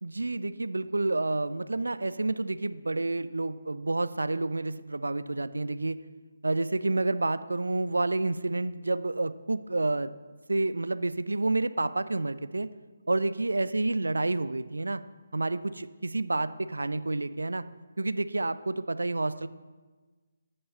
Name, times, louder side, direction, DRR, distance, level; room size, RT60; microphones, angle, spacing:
voice 1, 0.0-6.0 6.4-10.1 10.5-12.7 13.1-15.0 15.3-17.6 18.0-19.5, right 2 dB, 70° right, 13 dB, 0.5 m, -29 dB
14.0 x 5.5 x 7.1 m, 1.3 s
figure-of-eight pair, 145°, 0 cm